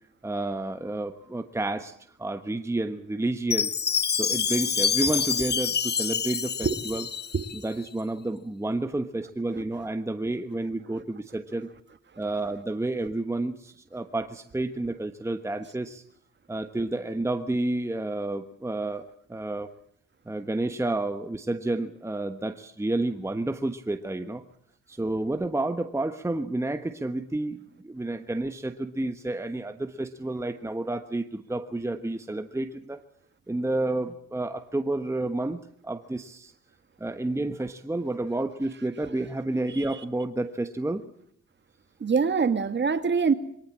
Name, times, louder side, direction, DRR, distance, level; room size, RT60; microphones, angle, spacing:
voice 1, 0.2-1.9 2.2-3.7 4.2-7.1 7.6-11.7 12.2-16.0 16.5-19.7 20.3-24.4 24.9-33.0 33.5-36.5 37.0-41.1, right 2 dB, 10° right, 8 dB, 1.2 m, -30 dB
Chime, 3.5-7.6, left 7 dB, 35° left, 1.0 m, -27 dB
voice 2, 42.0-43.3, right 5 dB, 35° right, 10 dB, 1.9 m, -24 dB
23.0 x 18.5 x 7.5 m, 0.69 s
cardioid pair, 90°, 30 cm